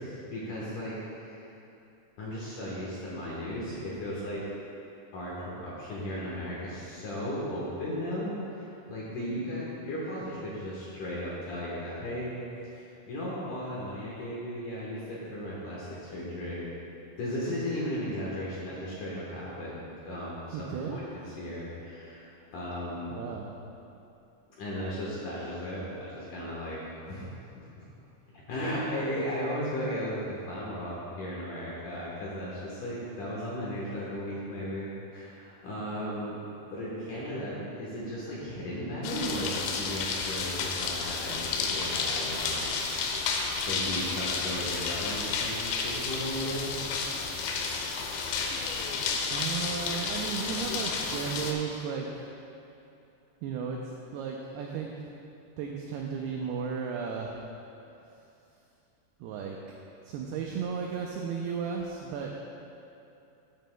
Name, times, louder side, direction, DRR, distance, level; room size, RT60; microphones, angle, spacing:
voice 1, 0.0-1.4 2.2-4.4 5.1-12.3 12.7-16.6 17.2-23.2 24.6-27.3 27.6-27.8 28.5-36.4 36.6-42.8 43.7-46.7, equal, 65° left, -6 dB, 2.1 m, -36 dB
voice 2, 20.5-21.0 23.1-23.5 49.3-52.3 53.4-54.9 55.6-57.4 59.2-59.6 60.0-62.3, right 6 dB, 85° right, 0 dB, 2.2 m, -34 dB
sound 1, 39.0-51.5, left 4 dB, 90° left, 3.0 m, -31 dB
14.0 x 9.5 x 2.2 m, 2.8 s
omnidirectional pair, 5.2 m